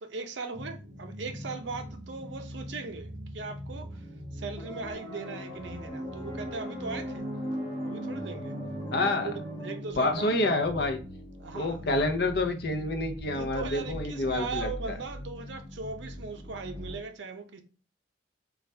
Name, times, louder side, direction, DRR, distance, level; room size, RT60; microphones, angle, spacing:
voice 1, 0.0-3.9 4.3-7.3 7.8-8.6 8.9-10.6 11.4-12.1 13.4-17.6, right 4 dB, 70° right, 0.6 m, -39 dB
sound 1, 0.5-17.0, equal, 35° right, 1.2 m, -41 dB
sound 2, 4.6-9.8, equal, 20° left, 0.5 m, -39 dB
voice 2, 8.9-9.3 10.0-11.0 11.5-15.0, left 2 dB, 60° left, 0.6 m, -28 dB
4.1 x 2.4 x 3.3 m
head